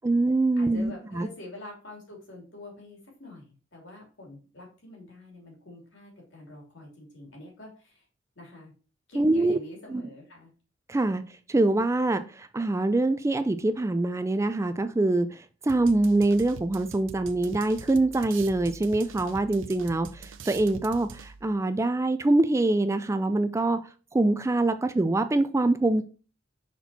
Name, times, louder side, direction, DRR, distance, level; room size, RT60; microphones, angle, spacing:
voice 1, 0.0-1.3 9.2-9.6 9.9-10.0 10.9-11.2 11.5-23.8 24.1-26.0, right 2 dB, 15° right, 0.3 m, -24 dB
voice 2, 0.6-8.0 8.3-8.7 9.1-10.5, left 1 dB, 70° left, 2.8 m, -46 dB
sound 1, 15.7-21.6, right 5 dB, 90° right, 0.6 m, -44 dB
6.0 x 4.3 x 4.1 m
head